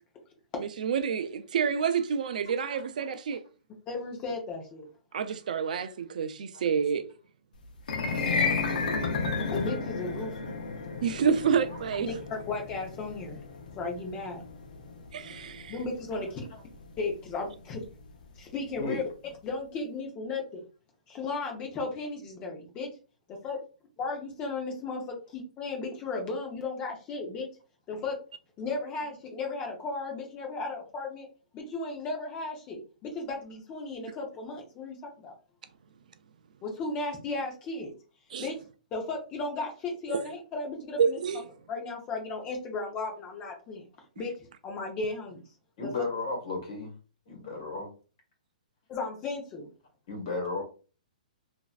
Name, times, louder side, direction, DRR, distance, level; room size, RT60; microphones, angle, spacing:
voice 1, 0.6-3.4 5.1-7.0 11.0-12.1 15.1-15.7 38.3-38.5 40.1-40.2 41.0-41.4, right 6 dB, 65° right, 0.4 m, -28 dB
voice 2, 3.9-4.9 9.5-10.5 12.0-13.4 13.8-14.4 15.7-16.4 17.0-17.8 18.4-20.6 21.1-22.9 23.4-23.6 24.0-27.5 27.9-28.2 28.6-31.3 31.5-35.3 36.6-37.9 38.4-38.6 38.9-41.2 41.7-43.8 44.2-44.3 44.6-45.4 45.8-45.9 48.9-49.7, left 3 dB, 20° left, 0.7 m, -35 dB
sound 1, 7.8-18.1, left 4 dB, 75° left, 0.7 m, -33 dB
voice 3, 45.8-46.9 47.3-47.9 50.1-50.6, left 3 dB, 40° left, 1.5 m, -34 dB
3.0 x 2.6 x 2.3 m
hypercardioid pair, 165°, 5 cm